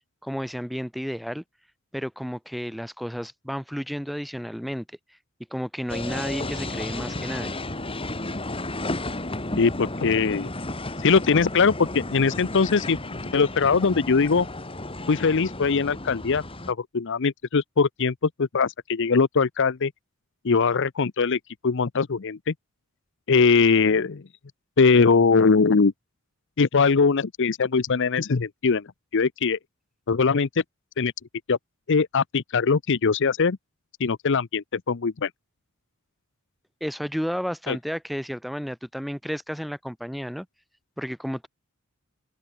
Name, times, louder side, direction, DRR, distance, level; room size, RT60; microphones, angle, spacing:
voice 1, 0.2-1.4 1.9-4.9 5.5-7.6 36.8-40.5 41.0-41.5, equal, ahead, 1.9 m, -32 dB
sound 1, 5.9-16.7, left 2 dB, 25° left, 3.8 m, -33 dB
voice 2, 9.6-10.5 11.0-14.5 15.1-19.9 20.4-22.5 23.3-24.2 24.8-25.9 26.6-28.9 29.1-29.6 30.1-30.5 31.0-31.1 31.5-31.6 31.9-33.6 34.0-35.3 37.7-37.8, left 5 dB, 60° left, 0.7 m, -21 dB
open air
head